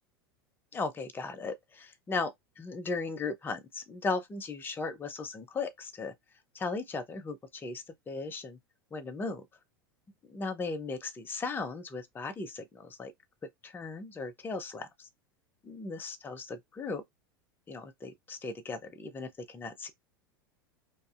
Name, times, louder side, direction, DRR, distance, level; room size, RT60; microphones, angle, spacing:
voice 1, 0.7-6.1 6.5-8.6 8.9-9.4 10.2-13.1 13.6-15.1 15.6-17.0 17.7-19.9, left 4 dB, 15° left, 0.5 m, -37 dB
2.5 x 2.4 x 2.4 m
hypercardioid pair, 85°, 12 cm